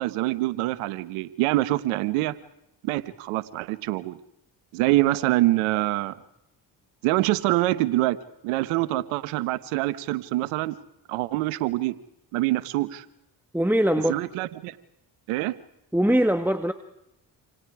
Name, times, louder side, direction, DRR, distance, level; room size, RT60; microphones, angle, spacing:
voice 1, 0.0-2.4 2.8-4.2 4.7-6.1 7.0-8.2 8.4-10.8 11.1-12.0 12.3-13.0 14.1-14.7 15.3-15.5, right 17 dB, 85° right, 14 dB, 1.3 m, -25 dB
voice 2, 13.5-14.2 15.9-16.7, equal, 5° right, 7 dB, 1.8 m, -21 dB
28.5 x 27.5 x 4.9 m, 0.84 s
hypercardioid pair, 45°, 49 cm